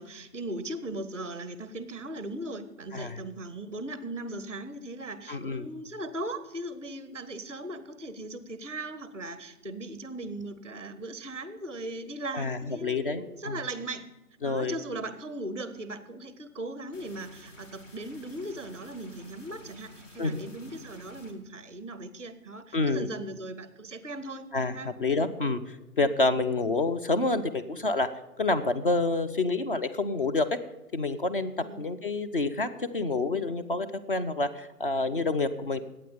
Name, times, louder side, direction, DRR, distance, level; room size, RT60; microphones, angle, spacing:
voice 1, 0.0-14.0 14.4-24.5 24.7-24.9 31.6-31.8, right 1 dB, 25° right, 13 dB, 0.5 m, -38 dB
voice 2, 5.3-5.7 12.3-13.6 14.4-14.7 20.2-20.4 22.7-23.1 24.5-28.1 28.4-30.5 30.9-31.5 31.8-35.8, left 3 dB, 35° left, 10 dB, 0.7 m, -28 dB
sound 1, 16.9-21.3, left 1 dB, 55° left, 3.4 m, -51 dB
12.0 x 8.7 x 7.0 m, 1.0 s
figure-of-eight pair, 145°, 45 cm